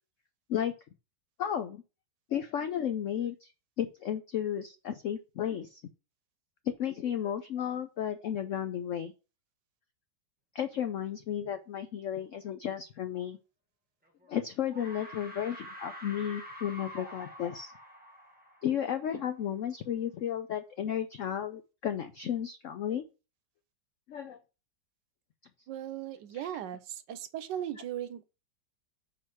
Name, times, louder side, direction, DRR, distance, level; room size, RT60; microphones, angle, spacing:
voice 1, 1.4-1.8 2.3-3.5 3.8-5.8 6.6-9.1 10.5-13.4 14.3-17.7 18.6-23.1 24.1-24.4, left 9 dB, 85° left, 0.6 m, -33 dB
sound 1, 14.1-14.4 14.7-19.3, equal, 5° right, 0.9 m, -47 dB
voice 2, 25.7-28.2, right 11 dB, 75° right, 1.3 m, -38 dB
5.1 x 3.8 x 5.8 m
omnidirectional pair, 2.0 m